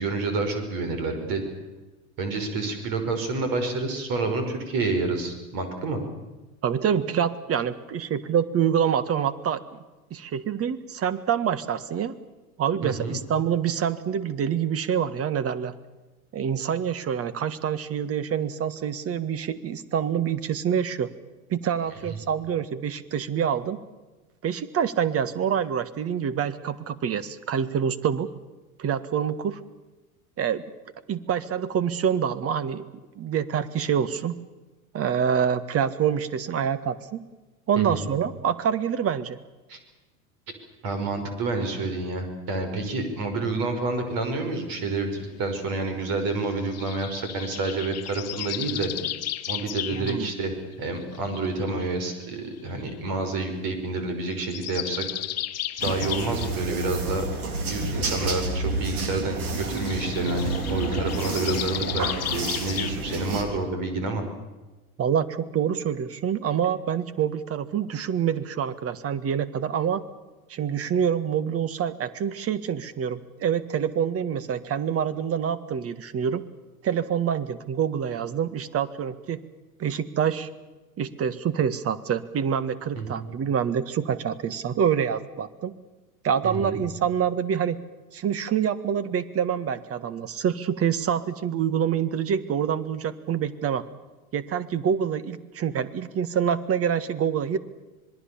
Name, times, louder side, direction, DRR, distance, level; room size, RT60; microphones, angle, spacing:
voice 1, 0.0-1.4 2.2-6.0 12.8-13.2 22.1-22.2 37.8-38.1 39.7-39.8 40.8-48.9 49.5-55.1 55.8-57.2 57.7-64.3 82.9-83.3 86.4-86.8, right 3 dB, 50° right, 7 dB, 6.0 m, -29 dB
voice 2, 6.6-9.8 10.1-12.1 12.6-15.7 16.3-21.1 21.5-23.8 24.4-28.3 28.8-29.6 30.4-30.6 31.1-32.8 33.1-34.3 34.9-37.2 37.7-39.4 49.9-50.3 65.0-70.0 70.5-76.4 76.8-79.4 79.8-80.5 81.0-85.7 86.2-87.8 88.1-93.8 94.3-97.6, right 8 dB, 30° right, 16 dB, 1.6 m, -26 dB
sound 1, 46.7-50.2 50.7-51.9 52.9-53.0 54.3-56.6 59.7-62.9, left 13 dB, 35° left, 1.4 m, -34 dB
sound 2, 55.8-63.4, right 2 dB, 75° right, 4.0 m, -30 dB
26.0 x 21.0 x 7.2 m, 1.1 s
hypercardioid pair, 85°, 44 cm